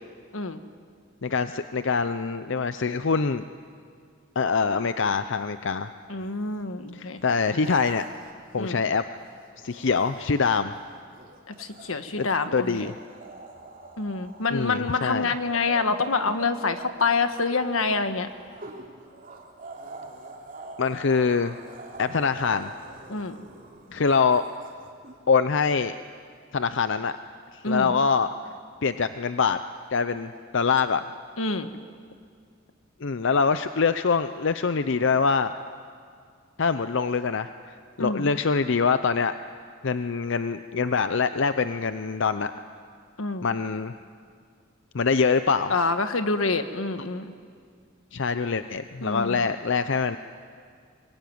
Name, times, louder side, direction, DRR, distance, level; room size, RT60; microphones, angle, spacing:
voice 1, 1.2-3.4 4.4-5.9 6.9-8.0 8.5-9.0 9.6-10.7 12.2-12.3 12.5-12.9 14.5-15.3 20.8-21.5 22.0-22.7 23.9-24.4 25.3-25.9 26.5-27.1 27.7-28.3 28.8-29.6 29.9-31.0 33.0-35.5 36.6-39.3 39.8-42.5 43.4-43.9 44.9-45.7 48.1-50.2, left 5 dB, 65° left, 11 dB, 0.6 m, -24 dB
voice 2, 6.1-7.2 8.6-8.8 11.5-12.9 14.0-18.3 23.1-23.3 27.6-27.9 31.4-31.7 38.0-38.2 43.2-43.5 45.7-47.3 49.0-49.4, left 3 dB, 90° left, 8 dB, 1.5 m, -27 dB
sound 1, 6.2-6.6 7.1-9.2 9.6-25.2, right 2 dB, 40° right, 3.2 m, -44 dB
25.0 x 21.0 x 9.4 m, 2.1 s
head